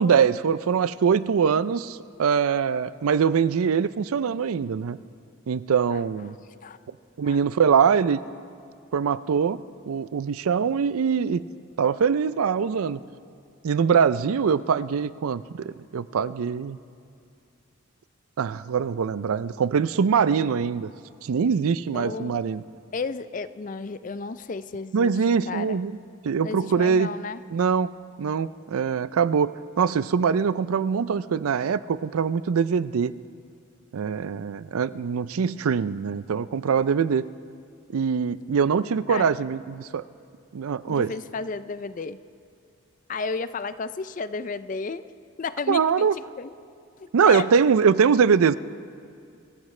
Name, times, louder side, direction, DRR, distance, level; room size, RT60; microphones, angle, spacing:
voice 1, 0.0-5.0 5.5-6.3 7.2-8.2 8.9-11.4 11.8-13.0 13.6-16.8 18.4-20.9 21.2-22.6 24.9-25.9 26.2-27.1 27.5-27.9 28.2-29.5 29.8-33.1 33.9-37.2 37.9-40.0 40.5-41.1 45.7-46.1 47.1-48.6, right 6 dB, 90° right, 16 dB, 0.4 m, -23 dB
voice 2, 6.3-6.8 7.2-7.4 21.9-22.4 22.9-25.2 25.5-25.8 26.4-27.4 39.1-39.4 40.9-42.2 43.1-45.1 45.4-46.5 47.0-47.5, left 4 dB, 40° left, 14 dB, 0.4 m, -33 dB
26.0 x 15.0 x 3.2 m, 2.4 s
head